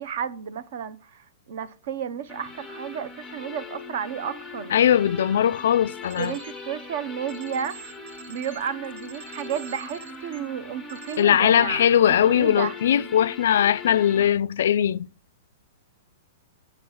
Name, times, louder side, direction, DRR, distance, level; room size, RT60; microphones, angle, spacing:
voice 1, 0.0-4.7 6.2-7.8 8.3-13.1, right 8 dB, 45° right, 0.6 m, -32 dB
sound 1, 2.3-14.3, left 4 dB, ahead, 0.6 m, -40 dB
voice 2, 4.7-6.4 11.2-15.1, left 10 dB, 60° left, 0.3 m, -20 dB
sound 2, 6.0-6.5 7.3-10.4 10.9-11.2, right 5 dB, 60° right, 1.2 m, -45 dB
7.8 x 5.9 x 4.8 m
supercardioid pair, 180°, 0 cm